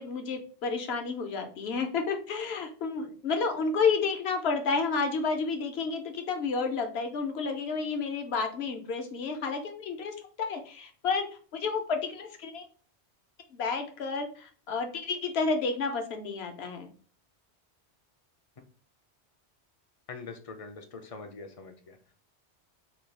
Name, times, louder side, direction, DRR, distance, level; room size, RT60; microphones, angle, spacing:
voice 1, 0.0-11.3 11.5-12.6 13.5-16.9, left 4 dB, 70° left, 5 dB, 1.0 m, -31 dB
voice 2, 20.1-22.0, left 4 dB, 45° left, 5 dB, 0.5 m, -43 dB
4.3 x 2.3 x 3.3 m, 0.42 s
omnidirectional pair, 1.1 m